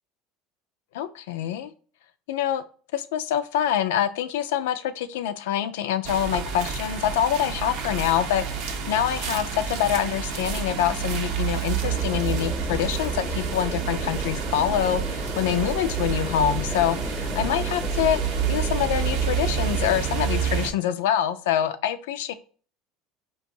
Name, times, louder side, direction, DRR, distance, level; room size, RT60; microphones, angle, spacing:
voice 1, 0.9-1.7 2.3-2.6 2.9-22.3, left 10 dB, 80° left, 11 dB, 0.4 m, -25 dB
sound 1, 6.0-20.7, right 7 dB, 70° right, 0.7 m, -28 dB
sound 2, 11.8-20.0, left 2 dB, 15° left, 0.7 m, -36 dB
4.7 x 2.5 x 2.6 m, 0.40 s
hypercardioid pair, 85°, 0 cm